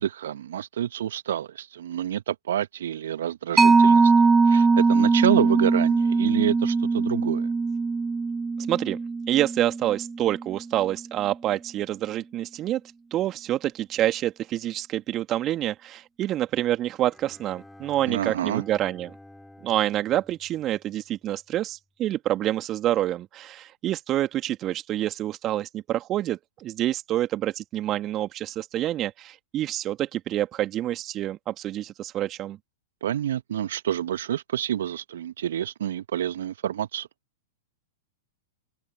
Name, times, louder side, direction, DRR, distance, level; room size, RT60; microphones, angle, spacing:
voice 1, 0.0-7.5 18.1-18.6 33.0-37.1, right 10 dB, 65° right, 1.4 m, -28 dB
Mallet percussion, 3.6-10.6, right 4 dB, 10° right, 0.7 m, -21 dB
voice 2, 8.7-9.0 9.3-12.8 13.1-19.1 19.6-32.6, right 13 dB, 30° right, 2.3 m, -27 dB
Bowed string instrument, 17.1-21.4, left 1 dB, 5° left, 5.3 m, -50 dB
figure-of-eight pair, 100°, 0 cm